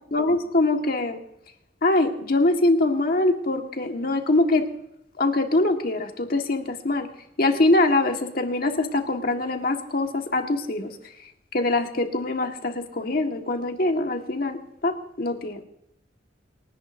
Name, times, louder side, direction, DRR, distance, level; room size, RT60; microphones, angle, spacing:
voice 1, 0.1-1.2 1.8-4.6 5.2-7.1 7.4-10.9 11.5-15.6, left 2 dB, 50° left, 4 dB, 1.6 m, -23 dB
28.5 x 10.5 x 2.7 m, 0.80 s
head